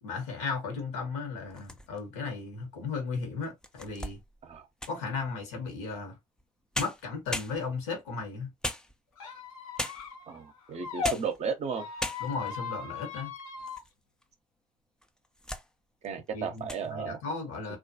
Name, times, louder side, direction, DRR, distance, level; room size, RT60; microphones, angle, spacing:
voice 1, 0.0-4.2 4.9-6.2 6.8-8.5 12.2-13.3 16.3-17.8, left 4 dB, 70° left, 1.0 m, -35 dB
sound 1, 1.4-2.2 2.8-2.9 3.4-5.1 6.4-6.5 6.7-8.0 8.6-9.3 9.8-10.2 10.8-11.4 11.7-11.8 12.0-12.6 13.1-13.9 14.2-14.3 15.0-15.7 16.0-16.3 16.6-16.9, left 1 dB, 5° left, 0.3 m, -38 dB
Squeak, 9.2-11.1 11.7-13.8, left 5 dB, 85° left, 0.6 m, -38 dB
voice 2, 10.3-11.9 16.0-17.2 17.7-17.8, right 6 dB, 40° right, 0.7 m, -34 dB
2.4 x 2.3 x 2.6 m
hypercardioid pair, 60°, 18 cm